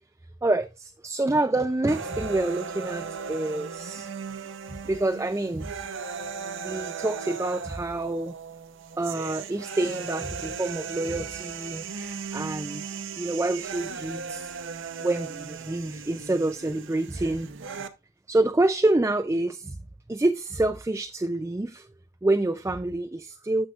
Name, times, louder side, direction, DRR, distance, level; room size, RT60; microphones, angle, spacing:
voice 1, 0.4-4.1 4.7-5.7 6.6-8.3 9.0-12.0 12.3-12.8 13.2-14.5 15.0-17.5 18.3-19.8 20.1-21.9 22.2-23.7, right 2 dB, 10° right, 0.3 m, -27 dB
sound 1, 1.9-17.9, right 5 dB, 55° right, 0.8 m, -37 dB
9.9 x 7.2 x 2.4 m
head